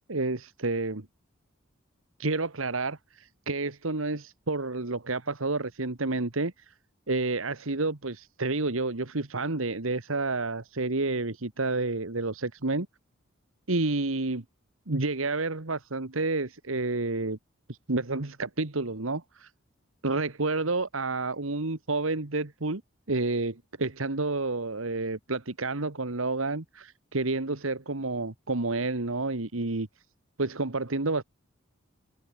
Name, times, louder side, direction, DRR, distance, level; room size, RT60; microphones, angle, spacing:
voice 1, 0.1-1.1 2.2-6.7 7.1-12.9 13.7-14.4 14.9-17.4 17.7-19.5 20.0-22.8 23.1-29.9 30.4-31.2, right 3 dB, 80° right, 1.7 m, -30 dB
head